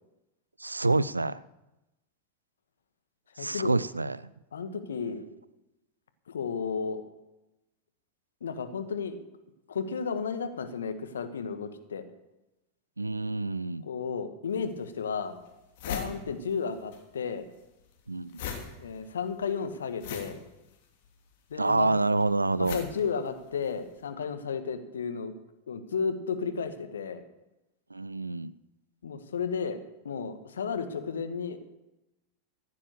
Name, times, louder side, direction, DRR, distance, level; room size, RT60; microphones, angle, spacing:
voice 1, 0.6-1.4 3.4-4.2 13.0-13.8 18.1-18.4 21.6-22.8 27.9-28.5, right 2 dB, 90° right, 19 dB, 0.4 m, -27 dB
voice 2, 3.4-3.8 4.5-5.2 6.3-7.0 8.4-9.2 9.7-12.0 13.8-15.4 15.9-17.5 18.8-20.4 21.5-21.9 22.6-25.3 25.7-27.2 29.0-29.8 30.0-31.7, left 6 dB, 75° left, 9 dB, 1.5 m, -33 dB
sound 1, 14.5-14.6 15.2-15.3 15.5-17.0 17.3-23.8, left 7 dB, 55° left, 2.8 m, -40 dB
15.0 x 9.3 x 6.7 m, 0.96 s
figure-of-eight pair, 90°, 0 cm